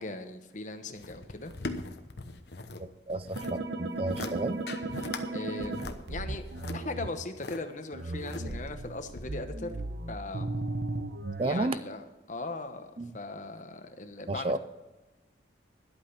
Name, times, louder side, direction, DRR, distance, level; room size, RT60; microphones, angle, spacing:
voice 1, 0.0-1.5 5.0-6.5 6.7-9.8 10.1-10.6 11.4-14.6, left 2 dB, 45° left, 8 dB, 1.0 m, -39 dB
sound 1, 1.0-2.8 3.1-3.6 4.0-4.3 4.7-5.2 5.6-7.6 8.1-8.7 9.1-9.2, left 3 dB, 65° left, 1.0 m, -40 dB
voice 2, 2.8-4.6 11.4-11.8 13.0-13.2 14.3-14.6, right 2 dB, 30° right, 14 dB, 0.5 m, -32 dB
sound 2, 3.4-7.1 7.9-11.5, right 2 dB, 60° right, 1.0 m, -36 dB
12.0 x 8.5 x 5.8 m, 1.1 s
head